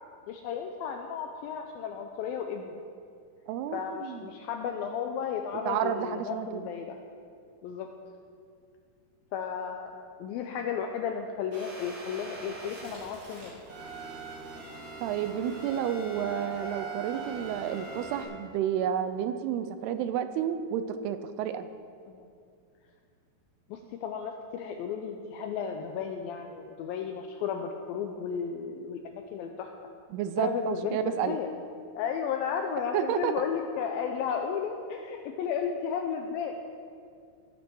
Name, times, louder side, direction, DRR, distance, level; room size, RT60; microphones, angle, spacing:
voice 1, 0.3-2.8 3.7-7.0 7.6-7.9 9.3-13.5 22.1-22.3 23.7-29.7 30.4-31.5 32.0-36.5, left 7 dB, 85° left, 4 dB, 2.1 m, -34 dB
voice 2, 3.5-4.3 5.7-6.7 15.0-21.7 30.1-31.4 32.9-33.4, right 9 dB, 80° right, 10 dB, 2.5 m, -31 dB
sound 1, 11.5-18.2, right 3 dB, 65° right, 5.4 m, -41 dB
19.0 x 8.2 x 4.6 m, 2.3 s
omnidirectional pair, 4.8 m